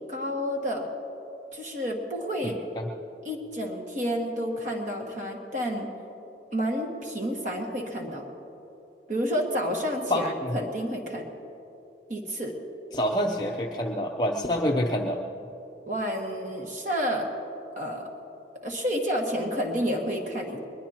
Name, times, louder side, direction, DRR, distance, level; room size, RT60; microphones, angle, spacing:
voice 1, 0.1-0.9 1.5-2.6 3.2-5.9 6.5-8.3 9.1-11.3 12.1-12.6 15.9-17.3 17.8-18.0 18.6-20.6, equal, 45° right, 0 dB, 1.9 m, -30 dB
voice 2, 2.4-2.9 10.1-10.6 12.9-15.2, equal, 25° left, 0 dB, 0.6 m, -27 dB
22.0 x 21.5 x 2.9 m, 2.9 s
head